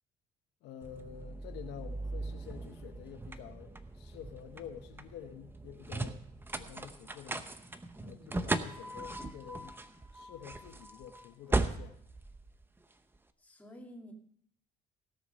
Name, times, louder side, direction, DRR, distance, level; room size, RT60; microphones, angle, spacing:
voice 1, 0.6-6.2 6.5-7.5 8.1-9.8 10.1-12.0, left 9 dB, 85° left, 7 dB, 1.1 m, -49 dB
sound 1, 0.8-13.2, right 2 dB, 15° right, 0.8 m, -38 dB
voice 2, 7.9-8.3 13.4-14.1, equal, 10° left, 0 dB, 2.5 m, -51 dB
17.0 x 6.7 x 5.4 m, 0.65 s
cardioid pair, 110°, 17 cm